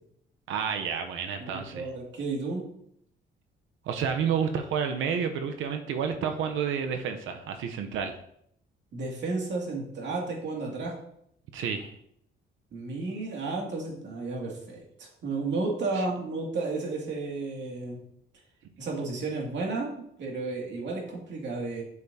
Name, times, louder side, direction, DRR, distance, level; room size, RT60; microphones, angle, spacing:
voice 1, 0.5-1.9 3.8-8.2 11.5-11.9 15.9-16.1, right 7 dB, 85° right, 6 dB, 0.8 m, -30 dB
voice 2, 1.4-2.7 8.9-10.9 12.7-18.0 18.8-19.9 20.2-21.8, right 3 dB, 65° right, -1 dB, 2.4 m, -32 dB
8.4 x 6.5 x 2.8 m, 0.72 s
cardioid pair, 90°, 20 cm